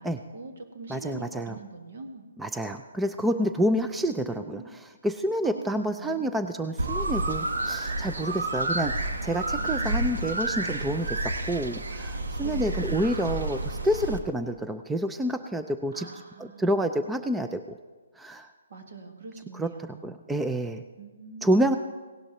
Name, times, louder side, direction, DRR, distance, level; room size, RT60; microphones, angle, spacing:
voice 1, 0.0-2.3 3.7-4.7 5.4-6.5 9.6-10.4 12.4-12.9 15.9-17.0 18.7-20.2 21.0-21.7, right 3 dB, 65° right, 4 dB, 1.9 m, -43 dB
voice 2, 0.9-1.6 2.4-4.6 5.0-16.1 16.4-17.8 18.2-18.5 19.6-19.7 20.0-20.8 21.4-21.8, equal, 5° right, 8 dB, 0.4 m, -28 dB
sound 1, 6.8-14.2, right 2 dB, 80° right, 1.2 m, -30 dB
17.0 x 11.5 x 3.1 m, 1.3 s
hypercardioid pair, 150°, 0 cm